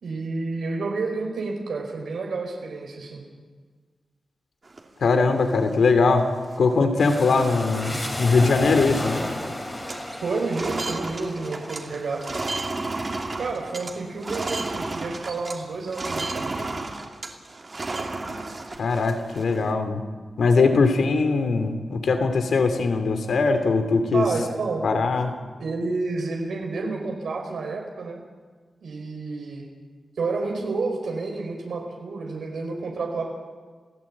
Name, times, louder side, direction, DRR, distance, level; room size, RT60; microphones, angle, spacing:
voice 1, 0.0-3.2 10.2-12.2 13.4-16.7 24.1-24.8 25.6-28.2 28.8-29.7 30.2-33.3, right 3 dB, 85° right, 1 dB, 4.9 m, -30 dB
sound 1, 4.6-5.7 6.2-6.3 6.5-6.9 7.3-7.5 7.8-8.9 9.1-9.4 9.6-15.6 15.9-19.7, right 2 dB, 35° right, 2.7 m, -33 dB
voice 2, 5.0-6.3 6.6-9.3 18.8-20.0 20.4-24.3 24.8-25.4, left 4 dB, 75° left, 7 dB, 2.9 m, -21 dB
sound 2, 7.0-14.6 15.1-15.9, left 1 dB, 15° left, 3.1 m, -34 dB
29.0 x 17.5 x 8.8 m, 1.5 s
wide cardioid pair, 180°, 0 cm